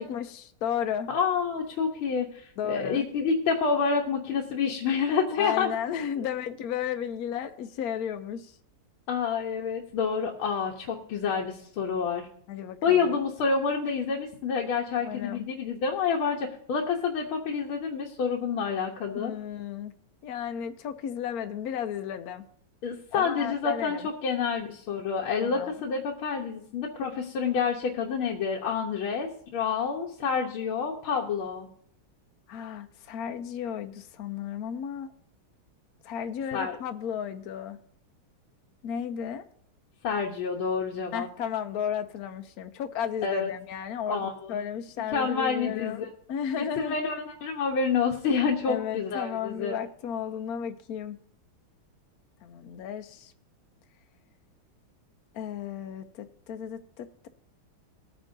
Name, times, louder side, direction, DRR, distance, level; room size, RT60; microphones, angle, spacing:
voice 1, 0.0-1.1 2.6-3.1 5.4-8.5 12.5-13.1 15.0-15.5 19.2-19.9 20.2-22.4 23.1-24.1 25.4-25.7 32.5-35.1 36.0-37.8 38.8-39.4 41.1-47.0 48.7-51.2 52.4-53.3 55.3-57.3, left 8 dB, 70° left, 8 dB, 0.8 m, -34 dB
voice 2, 1.1-5.7 6.2-6.3 9.1-12.3 12.8-19.4 22.8-31.7 36.5-36.8 40.0-41.3 43.2-43.5 44.1-44.6 45.1-46.1 46.6-49.8, left 5 dB, 90° left, -1 dB, 1.9 m, -28 dB
20.5 x 8.9 x 2.6 m, 0.66 s
omnidirectional pair, 2.3 m